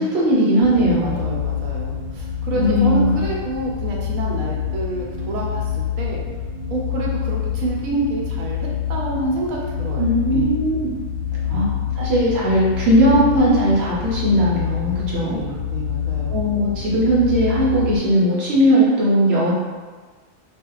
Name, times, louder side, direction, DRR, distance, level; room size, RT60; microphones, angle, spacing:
voice 1, 0.0-1.2 2.5-3.2 10.0-10.9 11.5-15.4 16.3-19.5, equal, 55° right, -6 dB, 1.0 m, -18 dB
sound 1, 0.6-18.0, left 9 dB, 60° left, 0.8 m, -26 dB
voice 2, 0.8-6.2 6.7-10.5 11.5-11.7 15.1-16.3, right 2 dB, 80° right, -2 dB, 1.0 m, -28 dB
2.4 x 2.4 x 2.9 m, 1.4 s
omnidirectional pair, 1.4 m